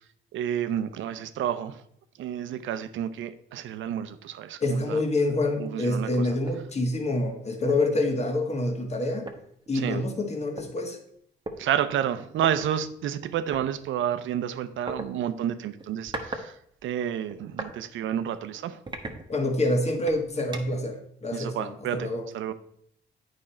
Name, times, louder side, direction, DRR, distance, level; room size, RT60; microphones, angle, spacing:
voice 1, 0.3-1.8 2.2-4.6 4.9-5.0 5.6-6.1 9.7-10.0 11.6-16.5 16.8-18.8 21.3-22.1 22.3-22.5, right 10 dB, 75° right, 12 dB, 0.7 m, -30 dB
voice 2, 4.6-9.3 9.7-11.0 19.3-22.3, left 2 dB, 35° left, 4 dB, 1.6 m, -27 dB
sound 1, 6.4-6.6 7.1-7.2 7.6-7.9 8.9-9.0 9.2-10.7 11.4-11.6 12.4-12.5 13.5-13.7 14.9-15.1 15.8-16.5 16.8-17.8 18.2-18.4 18.9-19.7 20.1-20.9, right 2 dB, 25° right, 1.2 m, -38 dB
8.7 x 5.3 x 4.3 m, 0.70 s
cardioid pair, 90°, 20 cm